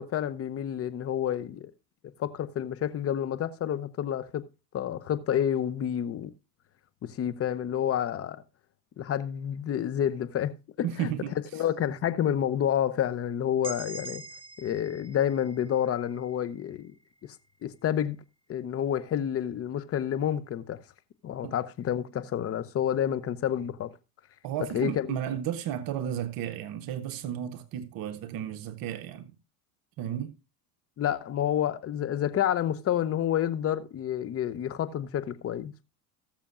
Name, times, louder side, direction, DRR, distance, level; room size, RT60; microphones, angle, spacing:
voice 1, 0.0-1.7 2.2-4.4 4.7-6.3 7.0-8.4 9.0-11.1 11.5-14.2 14.6-16.9 17.6-18.2 18.5-20.8 21.2-23.9 24.7-25.2 31.0-35.8, left 10 dB, 30° left, 0.9 m, -29 dB
voice 2, 10.8-11.3 21.4-21.5 24.4-29.3 30.0-30.4, right 10 dB, 50° right, 1.1 m, -33 dB
sound 1, 13.6-17.5, right 4 dB, 10° right, 1.3 m, -45 dB
19.0 x 6.8 x 2.5 m
supercardioid pair, 105°, 44 cm